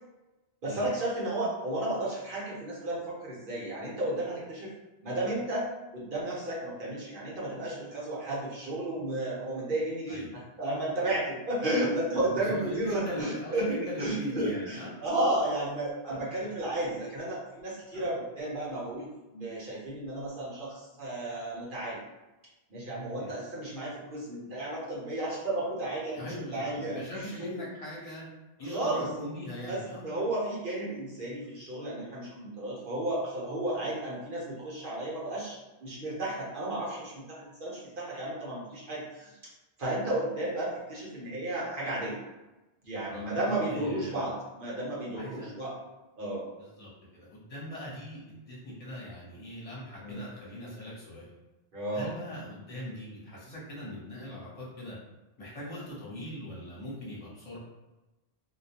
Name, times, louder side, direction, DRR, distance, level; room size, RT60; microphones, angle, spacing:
voice 1, 0.6-4.7 5.0-5.7 5.9-19.1 19.3-22.0 22.7-26.2 26.5-27.3 28.6-29.1 29.7-39.3 39.8-42.2 42.8-45.8 46.2-46.5 50.0-50.2 51.7-52.1, right 1 dB, 55° right, -6 dB, 0.9 m, -33 dB
voice 2, 12.1-15.0 16.0-16.3 17.9-18.1 23.2-23.3 26.1-28.2 28.6-30.1 43.1-44.3 45.1-45.5 46.6-48.2 48.5-51.3 51.9-55.0 55.4-57.6, left 1 dB, 35° left, -8 dB, 0.9 m, -41 dB
2.2 x 2.2 x 2.8 m, 1.1 s
omnidirectional pair, 1.1 m